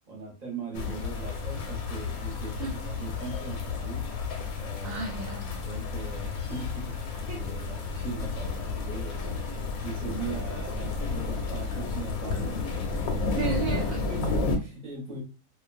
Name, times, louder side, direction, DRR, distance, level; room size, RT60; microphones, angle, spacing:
voice 1, 0.1-4.0 4.6-5.0 5.7-12.6 12.9-13.1 14.1-15.2, right 4 dB, 35° right, -1 dB, 0.9 m, -40 dB
sound 1, 0.7-14.6, left 4 dB, 85° left, 1.1 m, -32 dB
voice 2, 0.7-1.0 2.6-2.8 4.8-5.6 7.3-7.4 13.4-14.0, right 4 dB, 75° right, -1 dB, 1.0 m, -34 dB
2.4 x 2.2 x 2.5 m, 0.32 s
omnidirectional pair, 1.5 m